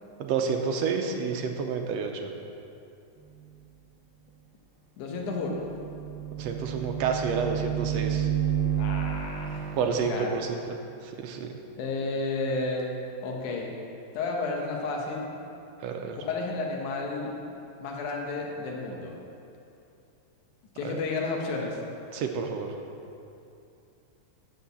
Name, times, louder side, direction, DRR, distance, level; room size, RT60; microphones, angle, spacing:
voice 1, 0.2-2.3 6.4-8.3 9.8-10.8 11.0-11.5 15.8-16.2 20.8-21.0 22.1-22.7, right 5 dB, 75° right, 4 dB, 1.6 m, -29 dB
voice 2, 5.0-5.6 8.8-9.7 10.1-10.3 11.8-12.9 13.2-13.7 14.1-15.3 16.1-17.3 17.8-19.2 20.8-21.8, left 3 dB, 80° left, 0 dB, 2.6 m, -32 dB
sound 1, 5.4-10.1, right 9 dB, 60° right, 1.4 m, -30 dB
10.0 x 6.4 x 6.9 m, 2.7 s
omnidirectional pair, 3.5 m